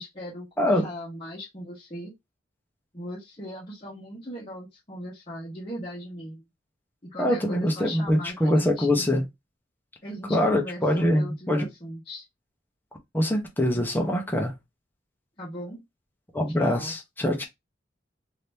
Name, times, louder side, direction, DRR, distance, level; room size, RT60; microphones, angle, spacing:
voice 1, 0.0-2.1 2.9-6.4 7.0-9.1 10.0-12.2 15.4-15.8 16.6-16.9, equal, 30° left, 1.2 m, -38 dB
voice 2, 7.2-9.2 10.3-11.7 13.1-14.5 16.3-17.4, left 1 dB, 10° left, 1.0 m, -24 dB
2.9 x 2.8 x 3.4 m
head